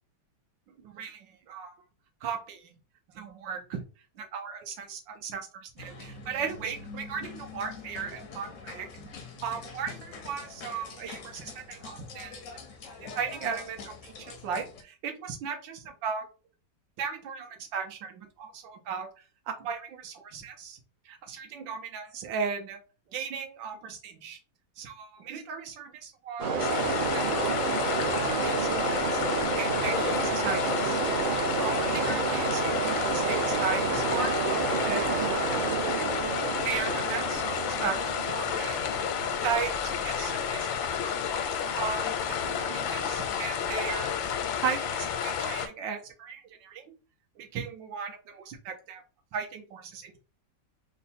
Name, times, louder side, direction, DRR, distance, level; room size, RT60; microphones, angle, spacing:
voice 1, 0.8-1.8 2.2-2.7 3.1-3.8 4.2-9.0 9.4-12.4 13.0-16.3 17.0-19.1 19.5-20.8 21.0-22.8 23.1-24.4 24.8-31.0 31.6-36.3 36.6-38.8 39.4-41.3 41.8-44.2 44.6-47.0 47.4-49.0 49.3-50.2, right 6 dB, 80° right, 5 dB, 1.5 m, -37 dB
sound 1, 5.8-14.8, left 4 dB, 70° left, 0.7 m, -44 dB
sound 2, 26.4-44.1, right 5 dB, 60° right, 0.5 m, -31 dB
sound 3, 26.6-45.7, left 8 dB, 90° left, 1.4 m, -31 dB
3.7 x 2.2 x 4.1 m, 0.34 s
omnidirectional pair, 2.1 m